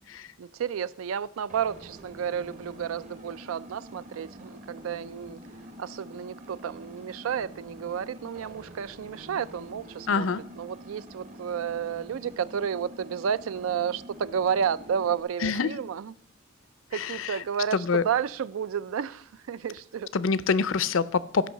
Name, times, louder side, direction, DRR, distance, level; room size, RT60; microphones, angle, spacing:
voice 1, 0.4-5.4 5.8-10.3 10.6-16.1 16.9-20.1, right 7 dB, 85° right, 0.4 m, -31 dB
sound 1, 1.5-15.2, equal, 35° right, 0.9 m, -47 dB
voice 2, 10.1-10.4 15.4-15.7 16.9-17.4 17.7-18.0 20.1-21.5, left 5 dB, 75° left, 0.5 m, -26 dB
13.5 x 5.5 x 6.5 m
head